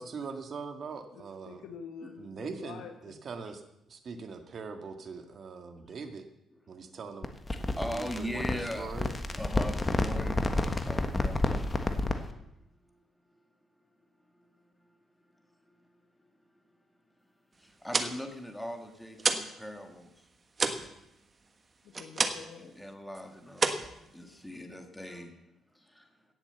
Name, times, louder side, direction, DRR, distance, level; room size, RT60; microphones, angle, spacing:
voice 1, 0.0-1.6 2.2-3.6 3.9-6.2 6.7-7.3 7.7-9.1, right 5 dB, 50° right, 6 dB, 1.8 m, -42 dB
voice 2, 1.1-3.2 21.8-22.8 23.7-24.1, left 6 dB, 85° left, 5 dB, 1.4 m, -47 dB
sound 1, 7.2-12.3, left 2 dB, 25° left, 1.3 m, -30 dB
voice 3, 7.5-8.9 9.3-11.9 17.6-20.1 22.6-23.7 24.1-25.3 25.9-26.0, equal, 5° left, 4 dB, 1.8 m, -40 dB
sound 2, 17.7-19.6 19.9-22.6 22.9-23.2 23.5-24.6, right 3 dB, 35° right, 1.3 m, -31 dB
17.0 x 7.2 x 6.9 m, 0.86 s
cardioid pair, 90°, 0 cm